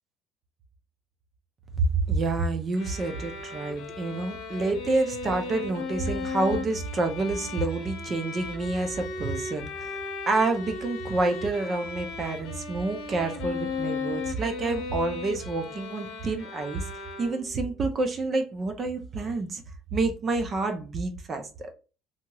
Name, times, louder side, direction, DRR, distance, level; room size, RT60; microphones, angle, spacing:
voice 1, 1.8-10.0 10.3-16.9 17.2-19.6 19.9-21.7, right 3 dB, 20° right, 0.4 m, -28 dB
sound 1, 2.7-17.7, left 4 dB, 60° left, 0.8 m, -36 dB
2.8 x 2.8 x 2.2 m
cardioid pair, 180°, 0 cm